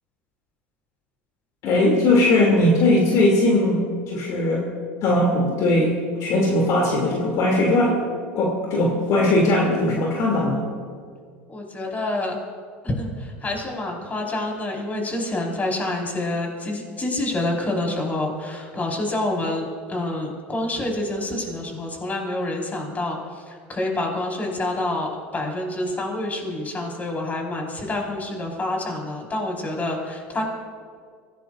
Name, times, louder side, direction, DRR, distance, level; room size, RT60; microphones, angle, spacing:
voice 1, 1.6-4.7 5.0-5.9 6.2-8.0 8.3-10.6, left 1 dB, 55° left, -2 dB, 3.1 m, -19 dB
voice 2, 11.5-12.4 12.8-30.4, left 2 dB, 25° left, 0 dB, 5.1 m, -27 dB
25.5 x 17.0 x 2.7 m, 2.1 s
hypercardioid pair, 75°, 6 cm